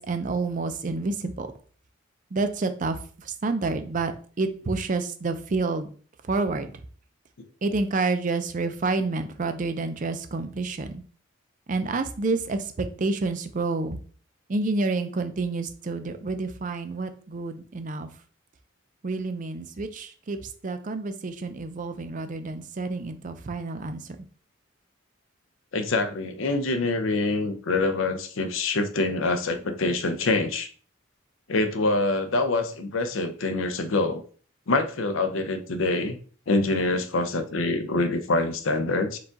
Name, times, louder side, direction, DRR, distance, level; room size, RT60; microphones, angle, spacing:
voice 1, 0.0-1.5 2.3-5.9 6.2-6.7 7.6-11.0 11.7-14.0 14.5-18.1 19.0-24.0, right 3 dB, 40° right, 9 dB, 0.4 m, -29 dB
voice 2, 25.7-30.7 31.5-34.2 34.7-36.2 36.5-39.2, left 2 dB, 75° left, 9 dB, 0.6 m, -25 dB
4.7 x 2.4 x 3.9 m, 0.42 s
head